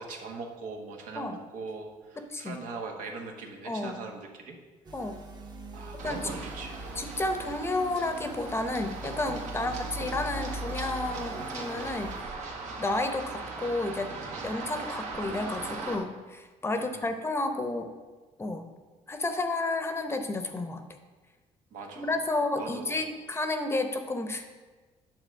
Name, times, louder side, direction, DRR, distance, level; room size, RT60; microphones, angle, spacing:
voice 1, 0.0-4.6 5.7-6.9 9.5-9.9 16.7-17.1 21.7-22.2 22.6-23.1, right 4 dB, 85° right, 2 dB, 1.3 m, -41 dB
voice 2, 2.2-2.6 3.6-4.0 4.9-5.2 5.9-6.4 7.0-12.1 12.8-14.1 14.4-17.9 18.4-18.6 19.1-20.8 22.0-24.5, left 2 dB, 20° left, 7 dB, 0.7 m, -31 dB
sound 1, 4.8-12.2, right 1 dB, 30° right, 1.0 m, -42 dB
Run, 6.0-15.9, right 3 dB, 70° right, 1.6 m, -39 dB
9.2 x 4.0 x 6.3 m, 1.3 s
cardioid pair, 130°, 13 cm